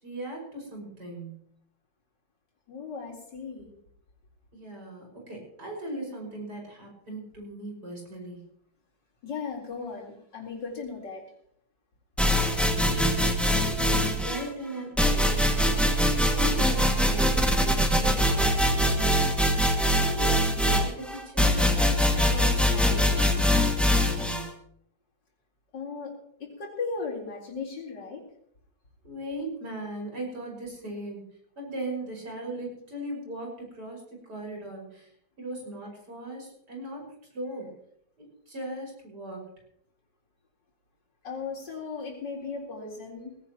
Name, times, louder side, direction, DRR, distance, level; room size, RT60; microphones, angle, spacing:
voice 1, 0.0-1.4 4.5-8.4 12.4-15.8 16.3-19.7 19.9-24.6 29.0-31.3 31.6-37.7 38.2-39.5, right 1 dB, 50° right, 0 dB, 6.2 m, -39 dB
voice 2, 2.7-3.7 9.2-11.2 25.7-28.2 41.2-43.4, left 4 dB, 60° left, -2 dB, 4.7 m, -36 dB
sound 1, 12.2-14.5 15.0-24.5, equal, ahead, 1.7 m, -23 dB
19.5 x 17.0 x 3.0 m, 0.67 s
omnidirectional pair, 2.2 m